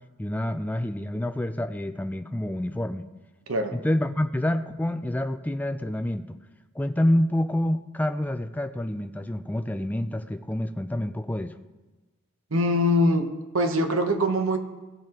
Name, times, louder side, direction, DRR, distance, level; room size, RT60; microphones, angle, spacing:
voice 1, 0.2-3.1 3.7-6.4 6.7-11.5, left 1 dB, 10° left, 7 dB, 0.4 m, -27 dB
voice 2, 12.5-13.3 13.5-14.6, left 1 dB, 75° right, 6 dB, 1.0 m, -22 dB
17.0 x 7.6 x 3.0 m, 1.2 s
head